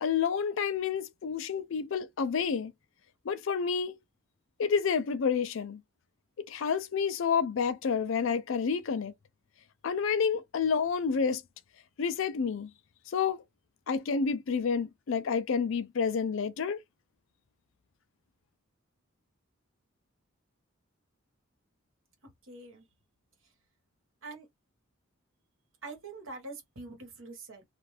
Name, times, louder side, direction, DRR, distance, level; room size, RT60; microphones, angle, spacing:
voice 1, 0.0-2.7 3.3-4.0 4.6-5.8 6.4-9.1 9.8-11.4 12.0-12.7 13.1-13.4 13.9-16.8, left 6 dB, 65° left, 0.4 m, -29 dB
voice 2, 22.2-22.9 24.2-24.5 25.8-27.6, right 3 dB, 65° right, 1.2 m, -44 dB
2.5 x 2.4 x 3.2 m
head